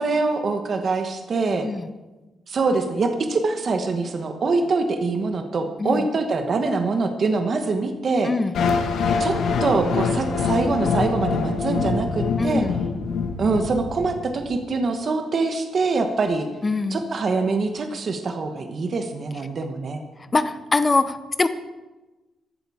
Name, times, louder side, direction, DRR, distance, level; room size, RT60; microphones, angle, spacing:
voice 1, 0.0-1.7 2.5-8.3 9.2-9.3 9.6-12.6 13.4-16.5 16.9-20.0, right 3 dB, 40° right, 5 dB, 1.1 m, -24 dB
voice 2, 8.2-8.5 12.4-12.8 16.6-17.1 20.3-21.5, left 3 dB, 20° left, 12 dB, 0.7 m, -23 dB
sound 1, 8.5-14.6, left 5 dB, 70° left, 1.5 m, -24 dB
15.5 x 11.5 x 4.8 m, 1.1 s
wide cardioid pair, 175°, 0 cm